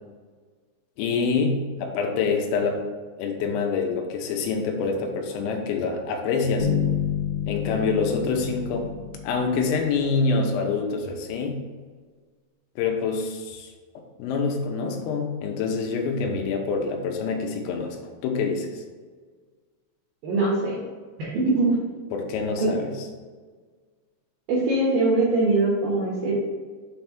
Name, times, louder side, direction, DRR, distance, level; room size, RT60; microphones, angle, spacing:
voice 1, 1.0-2.8 3.2-6.7 7.5-8.9 9.2-11.6 12.8-13.7 14.2-18.0 18.2-18.8 22.1-22.9, left 4 dB, 90° left, 2 dB, 3.5 m, -26 dB
Bass guitar, 6.6-10.4, left 8 dB, 75° left, 2.9 m, -29 dB
voice 2, 20.2-20.8 21.2-21.8 22.6-22.8 24.5-26.3, right 2 dB, 70° right, -5 dB, 2.2 m, -22 dB
7.5 x 3.4 x 5.9 m, 1.5 s
omnidirectional pair, 5.9 m